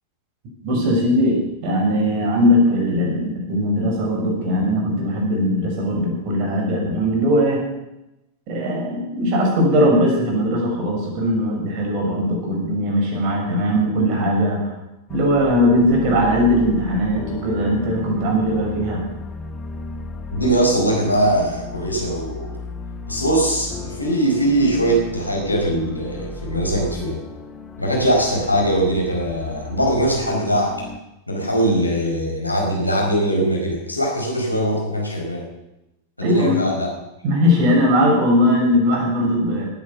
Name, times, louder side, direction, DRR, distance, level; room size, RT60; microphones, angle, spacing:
voice 1, 0.6-7.6 8.5-14.7 15.1-19.0 36.2-36.6 37.2-39.7, equal, 45° right, 0 dB, 6.2 m, -19 dB
sound 1, 15.1-31.0, left 3 dB, 20° left, 1.7 m, -35 dB
voice 2, 20.3-22.5 23.1-27.2 27.8-30.8 31.3-35.5 36.2-36.9, right 1 dB, 85° left, -1 dB, 4.8 m, -21 dB
18.5 x 9.6 x 7.1 m, 0.93 s
figure-of-eight pair, 90°, 0 cm